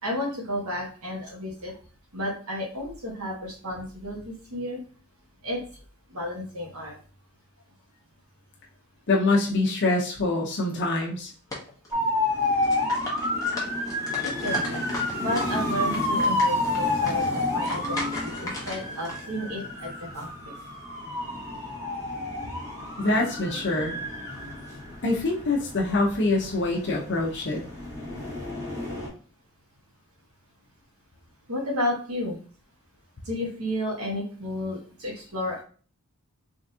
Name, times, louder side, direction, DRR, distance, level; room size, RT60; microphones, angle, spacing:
voice 1, 0.0-1.8 2.1-4.8 5.4-5.6 6.1-6.9 14.2-14.9 15.2-20.5 31.5-32.4 33.2-35.6, left 1 dB, 80° right, -3 dB, 1.3 m, -32 dB
voice 2, 9.1-11.3 23.0-23.9 25.0-27.6, left 2 dB, 50° left, -1 dB, 0.7 m, -25 dB
sound 1, 11.0-11.1 11.5-12.2 12.5-15.5 15.8-19.2, left 2 dB, 15° left, 1.0 m, -37 dB
sound 2, 11.9-29.1, left 2 dB, 15° right, 2.0 m, -29 dB
3.8 x 3.5 x 2.7 m, 0.40 s
head